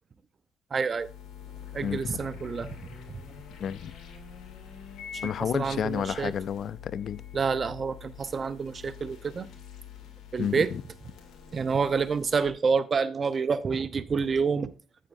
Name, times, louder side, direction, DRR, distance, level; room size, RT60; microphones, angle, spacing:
voice 1, 0.7-1.1 1.7-2.7 5.2-6.3 7.3-9.5 10.3-10.7 11.5-14.7, right 5 dB, 40° right, 0.8 m, -28 dB
sound 1, 1.0-12.5, left 7 dB, 90° left, 2.6 m, -45 dB
voice 2, 1.8-2.2 3.6-3.9 5.2-7.2 10.4-10.8, left 8 dB, 65° left, 0.4 m, -31 dB
14.5 x 7.5 x 2.6 m
cardioid pair, 90°, 0 cm